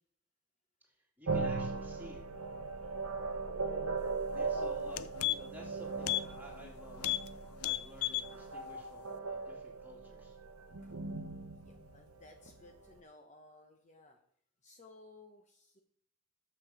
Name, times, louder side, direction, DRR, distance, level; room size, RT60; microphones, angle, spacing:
voice 1, 1.2-2.2 4.3-7.1 7.6-10.3, equal, 10° right, -2 dB, 2.6 m, -53 dB
sound 1, 1.3-12.7, right 4 dB, 85° right, 0.7 m, -39 dB
voice 2, 3.7-4.2 10.8-11.0 11.6-14.2 14.6-15.8, left 2 dB, 35° left, 4 dB, 0.8 m, -58 dB
sound 2, 4.3-4.5 4.8-5.6 6.0-6.3 6.6-6.7 7.0-7.3 7.6-8.3 8.7-8.8, left 15 dB, 85° left, 0.4 m, -34 dB
6.9 x 6.3 x 6.3 m, 0.63 s
head